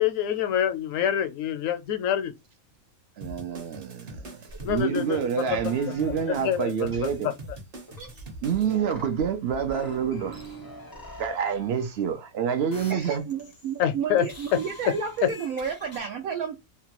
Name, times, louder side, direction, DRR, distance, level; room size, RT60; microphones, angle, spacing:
voice 1, 0.0-2.3 4.6-5.2 5.9-6.0 6.3-6.9 7.2-7.3 13.8-14.3, left 10 dB, 75° left, 0.9 m, -26 dB
sound 1, 3.2-8.8, right 1 dB, 45° right, 1.0 m, -42 dB
voice 2, 3.2-4.4 4.7-7.3 8.4-10.4 11.2-13.2, right 7 dB, 65° right, 0.7 m, -27 dB
sound 2, 4.5-6.5 6.8-7.5 7.9-12.3 12.7-13.8 14.2-16.0, right 1 dB, 30° left, 0.4 m, -45 dB
voice 3, 12.9-16.6, right 6 dB, 90° right, 1.1 m, -32 dB
2.9 x 2.2 x 2.9 m
omnidirectional pair, 1.5 m